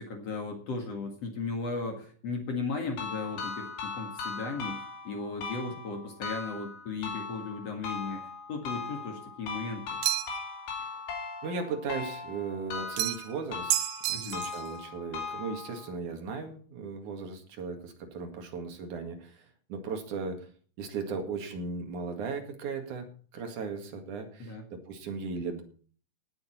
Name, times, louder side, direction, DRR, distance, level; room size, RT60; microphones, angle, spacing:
voice 1, 0.0-10.0 14.1-14.4 24.4-24.7, left 4 dB, 50° left, 4 dB, 2.0 m, -36 dB
sound 1, 3.0-15.9, left 4 dB, 85° left, 5.7 m, -39 dB
sound 2, 10.0-10.5 13.0-13.4 13.7-14.7, right 15 dB, 75° right, 2.8 m, -30 dB
voice 2, 11.4-13.7 14.1-20.5 20.8-23.1 23.3-25.6, right 4 dB, 50° right, 4 dB, 2.9 m, -37 dB
18.0 x 8.1 x 4.4 m, 0.43 s
omnidirectional pair, 5.4 m